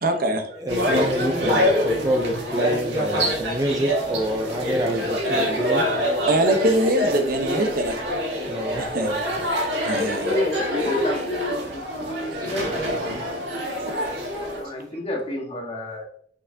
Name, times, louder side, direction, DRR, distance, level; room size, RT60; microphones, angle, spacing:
voice 1, 0.0-0.6 2.6-2.8 3.9-4.2 5.2-5.4 6.0-8.1 8.8-10.4 10.7-10.9 12.3-12.7 13.9-14.2, right 1 dB, 55° right, 5 dB, 0.9 m, -25 dB
voice 2, 0.5-5.9 8.5-9.4 13.6-13.8, equal, 20° right, 2 dB, 0.6 m, -27 dB
sound 1, 0.7-14.6, equal, 75° right, 1.8 m, -25 dB
voice 3, 10.3-12.7 14.6-16.1, left 1 dB, 35° left, 0 dB, 1.4 m, -30 dB
6.2 x 5.8 x 2.7 m, 0.64 s
head